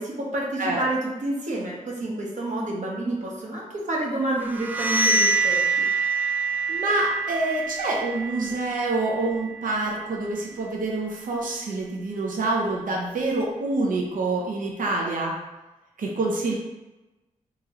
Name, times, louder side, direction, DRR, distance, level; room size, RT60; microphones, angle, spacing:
voice 1, 0.0-5.6, right 2 dB, 60° right, -3 dB, 1.0 m, -29 dB
sound 1, 4.4-10.0, right 3 dB, 10° right, 0.4 m, -26 dB
voice 2, 6.7-15.3 16.0-16.5, right 2 dB, 80° right, -1 dB, 0.7 m, -26 dB
3.0 x 3.0 x 3.7 m, 1.1 s
wide cardioid pair, 125°, 14 cm